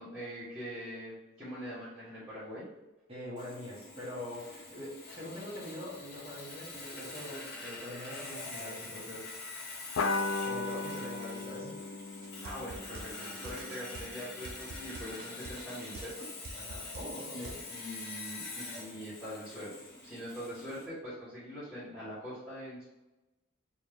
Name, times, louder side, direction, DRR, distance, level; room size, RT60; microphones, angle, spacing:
voice 1, 0.0-2.7 12.4-16.3 16.8-16.9 17.3-22.8, equal, 5° right, -13 dB, 1.0 m, -43 dB
voice 2, 3.1-9.3 9.7-9.9 10.2-11.8 16.6-17.6, left 1 dB, 30° right, -6 dB, 1.2 m, -43 dB
Sawing, 3.4-20.9, left 3 dB, 50° left, 0.8 m, -45 dB
sound 1, 10.0-14.9, left 3 dB, 75° left, 0.4 m, -37 dB
sound 2, 12.2-17.6, right 3 dB, 90° right, 0.4 m, -46 dB
4.3 x 2.3 x 3.3 m, 1.0 s
head